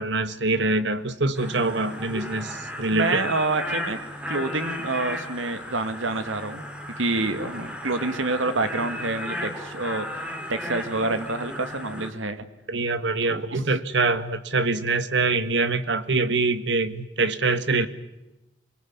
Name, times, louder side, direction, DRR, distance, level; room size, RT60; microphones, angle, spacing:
voice 1, 0.0-3.2 12.7-17.9, right 3 dB, 65° right, 12 dB, 1.7 m, -24 dB
sound 1, 1.4-12.1, left 1 dB, 5° right, 2.8 m, -35 dB
voice 2, 2.9-4.0 4.3-6.6 7.0-12.5 13.2-13.6, right 2 dB, 85° right, 10 dB, 2.1 m, -27 dB
26.5 x 20.5 x 9.7 m, 1.0 s
head